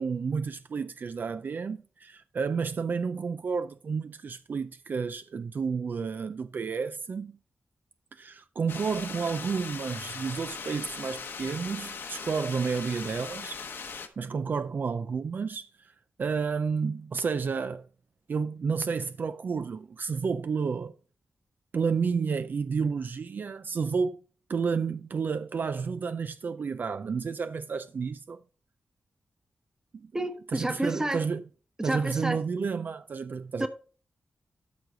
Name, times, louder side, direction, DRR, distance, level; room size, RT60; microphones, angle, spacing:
voice 1, 0.0-7.4 8.1-13.6 14.2-17.9 18.3-20.9 21.7-24.2 24.5-28.4 29.9-30.1 30.5-31.4 31.8-33.7, right 5 dB, 55° right, 0.4 m, -31 dB
sound 1, 8.7-14.1, left 5 dB, 80° left, 1.1 m, -39 dB
voice 2, 30.1-31.2 31.8-32.4 33.6-33.7, right 1 dB, 15° right, 1.1 m, -30 dB
13.0 x 4.7 x 3.8 m
wide cardioid pair, 95°, 4 cm